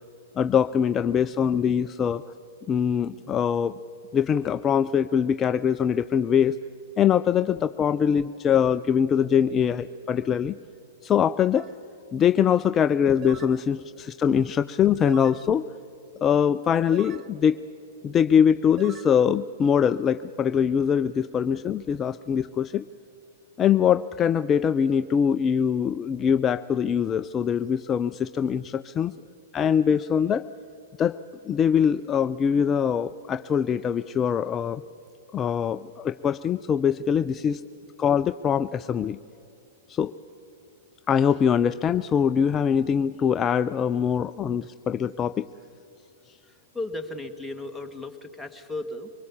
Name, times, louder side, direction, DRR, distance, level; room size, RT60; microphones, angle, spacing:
voice 1, 0.4-2.2 2.7-3.7 4.1-6.6 7.0-10.6 11.0-11.7 12.1-15.7 16.2-17.6 18.0-22.9 23.6-29.1 29.5-30.5 31.0-31.2 31.4-34.8 35.3-37.6 38.0-39.2 39.9-40.1 41.1-45.5, left 8 dB, 25° left, 11 dB, 0.4 m, -23 dB
sound 1, 11.6-11.7 13.2-13.6 15.1-15.4 16.9-17.3 18.8-19.1, right 9 dB, 30° right, 0.9 m, -41 dB
voice 2, 46.4-49.1, left 2 dB, ahead, 8 dB, 1.7 m, -36 dB
24.0 x 20.5 x 7.3 m, 2.7 s
hypercardioid pair, 120°, 0 cm